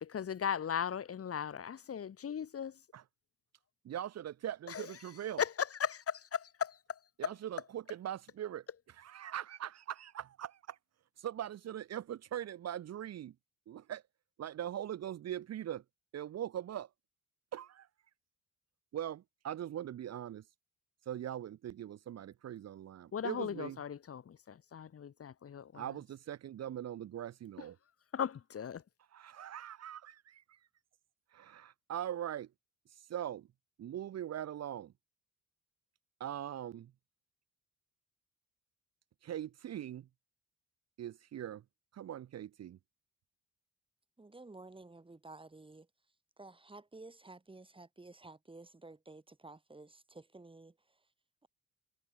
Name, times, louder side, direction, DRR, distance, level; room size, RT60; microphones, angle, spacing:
voice 1, 0.0-2.8 4.7-4.9 5.4-7.0 23.1-25.8 28.1-28.8, left 8 dB, 50° left, 2.5 m, -37 dB
voice 2, 3.8-5.4 7.2-10.8 11.2-13.3 13.7-14.0 14.4-15.8 16.1-16.9 17.5-17.9 18.9-20.4 21.1-23.8 25.7-27.8 29.1-30.6 31.3-32.5 33.1-33.5 33.8-34.9 36.2-36.9 39.2-40.1 41.0-41.6 41.9-42.8, right 11 dB, 55° right, 1.0 m, -41 dB
voice 3, 44.2-45.9 46.4-51.1, right 2 dB, 15° right, 3.5 m, -53 dB
cardioid pair, 90°, 30 cm